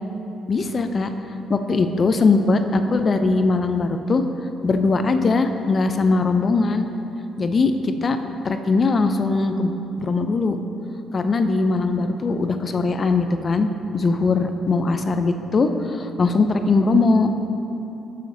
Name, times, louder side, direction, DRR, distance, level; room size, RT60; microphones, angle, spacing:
voice 1, 0.5-1.1 1.5-4.2 4.6-6.9 7.4-8.2 8.4-9.7 10.0-10.6 11.1-13.7 13.9-17.5, left 3 dB, 40° left, 7 dB, 0.5 m, -20 dB
9.2 x 6.7 x 4.0 m, 2.9 s
cardioid pair, 90°, 0 cm